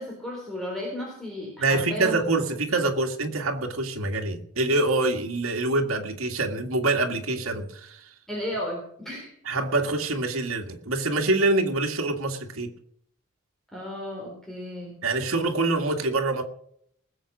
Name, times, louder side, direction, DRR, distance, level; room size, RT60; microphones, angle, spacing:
voice 1, 0.0-2.2 8.3-9.3 13.7-14.9, equal, ahead, -4 dB, 4.2 m, -34 dB
voice 2, 1.6-8.1 9.5-12.7 15.0-16.4, right 2 dB, 90° right, 3 dB, 2.0 m, -25 dB
20.0 x 7.8 x 6.2 m, 0.67 s
head